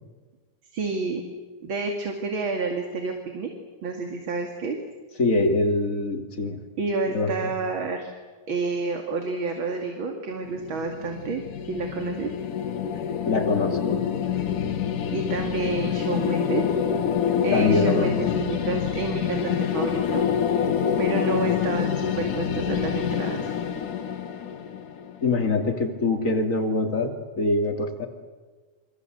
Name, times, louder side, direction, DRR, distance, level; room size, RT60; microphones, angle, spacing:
voice 1, 0.7-1.2 1.6-3.5 3.8-4.8 6.8-8.1 8.5-12.3 15.1-16.6 17.4-20.3 21.0-23.5, right 4 dB, 40° right, 3 dB, 2.9 m, -29 dB
voice 2, 5.2-6.6 7.1-7.5 13.3-14.0 17.5-18.3 25.2-28.1, left 3 dB, 25° left, 3 dB, 3.0 m, -24 dB
sound 1, 10.4-25.5, left 8 dB, 90° left, 3.4 m, -26 dB
28.5 x 25.0 x 8.0 m, 1.3 s
omnidirectional pair, 3.5 m